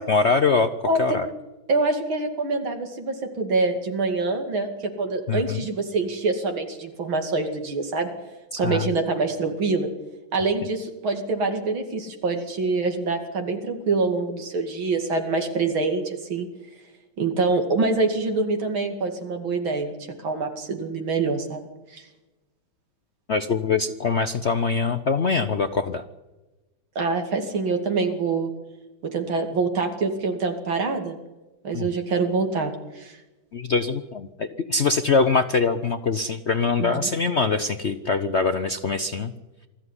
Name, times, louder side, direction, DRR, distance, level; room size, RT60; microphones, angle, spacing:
voice 1, 0.1-0.7 1.0-1.3 5.3-5.6 8.6-8.9 23.3-26.0 31.7-31.9 33.5-39.3, left 4 dB, 55° left, 9 dB, 0.7 m, -23 dB
voice 2, 0.9-1.2 1.7-8.1 8.5-9.9 10.3-16.5 17.2-19.9 20.2-22.0 26.9-28.5 29.0-31.2 31.6-33.2 36.8-37.1, right 3 dB, 85° right, 4 dB, 3.2 m, -25 dB
21.0 x 14.0 x 9.8 m, 1.1 s
omnidirectional pair, 2.2 m